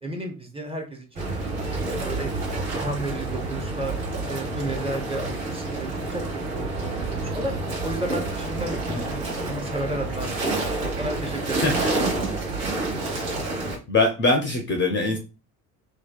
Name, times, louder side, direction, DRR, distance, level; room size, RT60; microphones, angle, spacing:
voice 1, 0.0-2.3 2.7-4.0 4.3-7.6 7.8-10.6 11.0-12.1, right 1 dB, 15° right, 3 dB, 0.8 m, -33 dB
sound 1, 1.2-13.8, right 2 dB, 70° right, 1.2 m, -29 dB
voice 2, 13.9-15.2, left 2 dB, 30° left, 4 dB, 0.5 m, -22 dB
2.6 x 2.2 x 2.2 m, 0.31 s
figure-of-eight pair, 60°, 42 cm